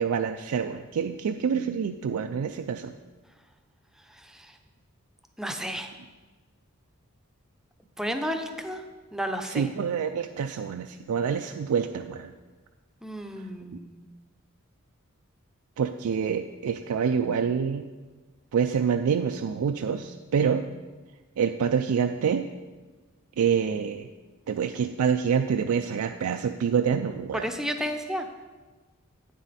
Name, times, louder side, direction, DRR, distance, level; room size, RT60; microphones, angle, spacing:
voice 1, 0.0-2.9 9.5-12.3 15.8-17.9 18.5-20.6 21.4-22.4 23.4-24.1 24.5-27.5, right 7 dB, 80° right, 6 dB, 0.4 m, -26 dB
voice 2, 4.0-4.6 5.4-5.9 8.0-8.8 9.1-9.7 13.0-14.1 27.3-28.3, equal, ahead, 6 dB, 0.5 m, -32 dB
8.9 x 7.5 x 4.1 m, 1.3 s
head